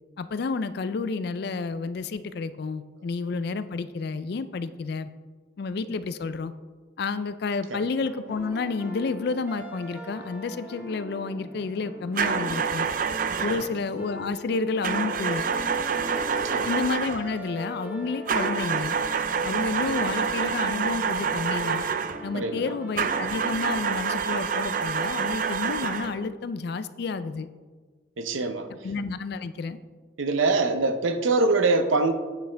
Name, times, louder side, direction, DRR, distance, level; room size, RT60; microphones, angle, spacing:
voice 1, 0.2-5.1 5.6-6.5 7.0-12.9 13.4-15.5 16.6-19.0 19.4-21.9 22.2-27.5 28.8-29.8, left 4 dB, 55° left, 13 dB, 0.4 m, -30 dB
sound 1, 8.0-24.9, left 1 dB, 10° right, 0.9 m, -41 dB
sound 2, 12.2-13.7 14.8-17.3 18.3-22.2 23.0-26.2, right 6 dB, 45° right, 0.4 m, -27 dB
voice 2, 28.2-28.7 30.2-32.1, right 3 dB, 90° right, 8 dB, 0.7 m, -24 dB
9.2 x 7.9 x 3.4 m, 1.4 s
head